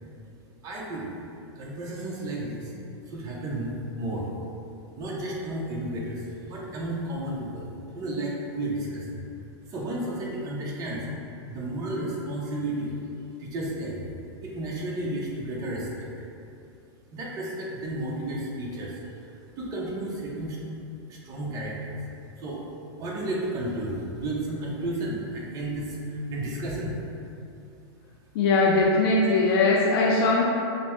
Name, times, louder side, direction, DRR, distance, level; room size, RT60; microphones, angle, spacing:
voice 1, 0.6-1.1 1.5-2.7 3.1-4.3 5.0-9.2 9.7-11.0 11.5-12.9 13.4-14.0 14.4-16.1 17.1-19.0 19.6-20.6 21.1-22.0 22.4-22.6 23.0-26.9, right 1 dB, 25° right, -3 dB, 0.6 m, -32 dB
voice 2, 28.3-30.4, left 3 dB, 60° left, -3 dB, 0.4 m, -20 dB
5.1 x 2.0 x 3.0 m, 2.6 s
supercardioid pair, 150°, 14 cm